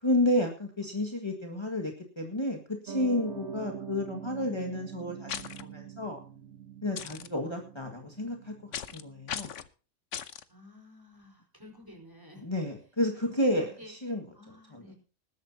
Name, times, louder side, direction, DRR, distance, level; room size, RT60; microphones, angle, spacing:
voice 1, 0.0-6.2 6.8-8.5 8.9-9.5 12.4-14.2 14.7-14.8, left 1 dB, 20° left, 1 dB, 1.9 m, -31 dB
Piano, 2.9-9.4, right 7 dB, 65° right, 1.5 m, -44 dB
sound 1, 5.3-5.6 7.0-7.3 8.7-9.0 9.3-9.7 10.1-10.4, left 9 dB, 75° left, 1.2 m, -37 dB
voice 2, 10.5-12.5 13.1-14.0 14.3-15.0, left 1 dB, 15° right, 2 dB, 4.5 m, -52 dB
20.0 x 12.0 x 2.8 m, 0.36 s
omnidirectional pair, 1.3 m